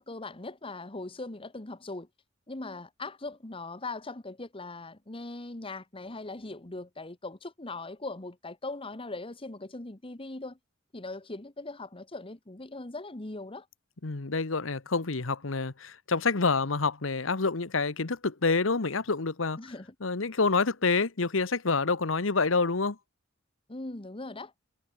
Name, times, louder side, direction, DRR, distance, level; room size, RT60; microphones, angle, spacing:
voice 1, 0.0-2.1 2.5-10.6 10.9-13.7 19.6-19.9 23.7-24.5, left 2 dB, 25° left, 1.4 m, -40 dB
voice 2, 14.0-19.6 20.0-23.0, left 4 dB, 75° left, 1.2 m, -27 dB
head